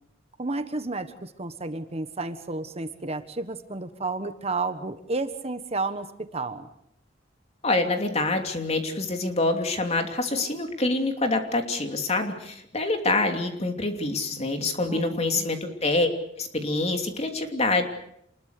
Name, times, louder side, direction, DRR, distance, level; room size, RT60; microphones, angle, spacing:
voice 1, 0.4-6.1 6.3-6.7 14.9-15.5, right 3 dB, 35° right, 9 dB, 1.4 m, -31 dB
voice 2, 7.6-16.1 16.4-17.8, left 2 dB, 35° left, 5 dB, 3.0 m, -26 dB
27.5 x 21.0 x 6.7 m, 0.73 s
head